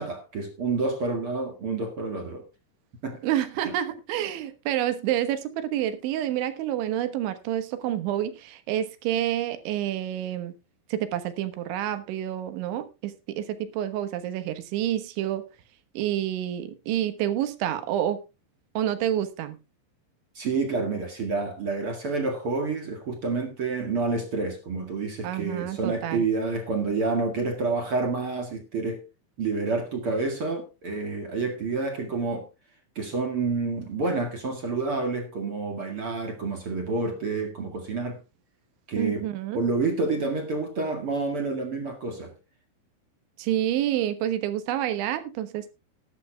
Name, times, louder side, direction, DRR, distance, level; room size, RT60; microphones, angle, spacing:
voice 1, 0.0-2.4 3.0-3.2 3.6-3.7 20.3-29.0 29.4-32.5 33.0-38.2 38.9-39.3 39.5-42.3, right 3 dB, 45° right, 1.9 m, -28 dB
voice 2, 3.2-10.5 10.9-15.4 16.0-18.2 18.8-19.6 25.2-26.2 39.0-39.6 43.4-45.7, right 11 dB, 80° right, 3.7 m, -28 dB
18.5 x 11.5 x 2.3 m
omnidirectional pair, 5.3 m